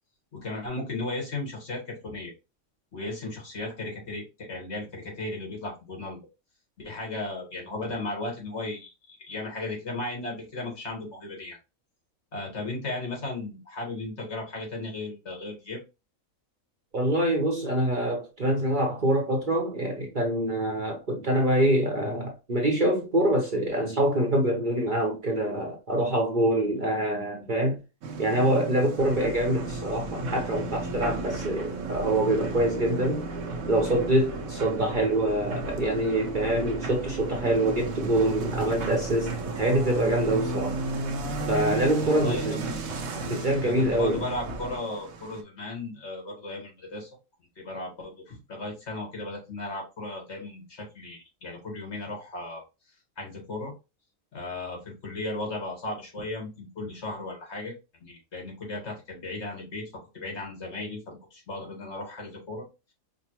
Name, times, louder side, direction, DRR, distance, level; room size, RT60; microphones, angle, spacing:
voice 1, 0.3-2.3 2.9-6.2 6.8-8.9 9.3-11.6 12.3-15.8 42.0-42.8 43.6-47.1 47.6-52.6 53.2-53.7 54.3-57.8 58.0-62.7, left 2 dB, 55° left, 1.8 m, -35 dB
voice 2, 16.9-27.8 28.2-33.2 33.7-40.8 41.5-42.6 43.2-44.2, right 1 dB, 40° right, 0.9 m, -25 dB
sound 1, 28.0-45.4, right 4 dB, 85° right, 1.2 m, -36 dB
sound 2, 29.0-44.8, right 2 dB, 65° right, 1.2 m, -37 dB
5.3 x 2.2 x 2.9 m
omnidirectional pair, 1.4 m